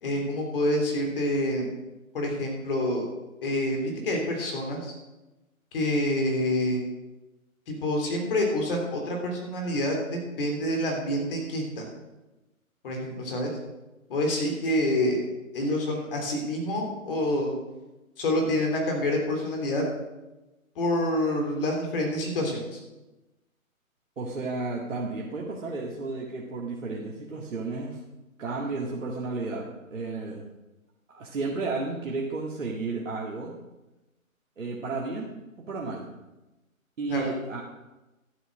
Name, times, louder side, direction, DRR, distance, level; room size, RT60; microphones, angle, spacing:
voice 1, 0.0-1.7 2.1-3.1 3.4-4.9 5.7-6.8 7.7-11.8 12.8-13.5 14.1-15.2 15.5-17.5 18.2-19.9 20.8-22.8 37.1-37.3, left 1 dB, 40° left, 1 dB, 3.5 m, -27 dB
voice 2, 24.2-28.0 28.4-30.4 31.1-33.5 34.6-35.3 35.6-36.1 37.0-37.6, right 3 dB, 60° right, -3 dB, 2.0 m, -32 dB
12.0 x 7.9 x 6.4 m, 1.0 s
figure-of-eight pair, 140°, 42 cm